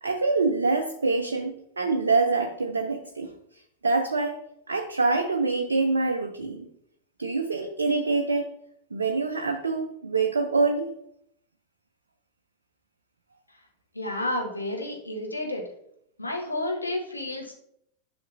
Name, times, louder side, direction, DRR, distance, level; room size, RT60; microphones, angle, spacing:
voice 1, 0.0-4.4 4.7-6.7 7.2-8.5 8.9-10.9, right 3 dB, 75° right, 4 dB, 0.6 m, -25 dB
voice 2, 13.9-15.6 16.2-17.5, left 1 dB, 85° left, 0 dB, 1.4 m, -31 dB
10.5 x 6.0 x 2.6 m, 0.74 s
figure-of-eight pair, 90°, 0 cm